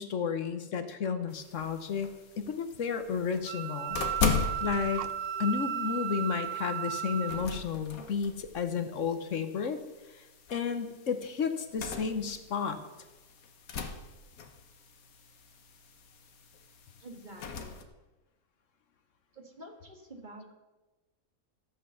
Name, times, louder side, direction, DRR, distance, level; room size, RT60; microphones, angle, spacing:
voice 1, 0.0-4.0 4.6-5.0 5.4-9.8 10.1-12.8, left 6 dB, 65° left, 9 dB, 1.2 m, -32 dB
sound 1, 0.8-1.4 2.5-2.6 3.5-3.7 3.9-5.2, right 12 dB, 70° right, 0.8 m, -46 dB
sound 2, 1.3-17.8, left 5 dB, 85° left, 1.6 m, -39 dB
Wind instrument woodwind instrument, 3.5-7.5, right 9 dB, 90° right, 1.3 m, -35 dB
voice 2, 17.0-17.8 19.3-20.5, right 1 dB, 35° right, 3 dB, 1.7 m, -48 dB
14.0 x 8.0 x 6.9 m, 1.1 s
omnidirectional pair, 1.5 m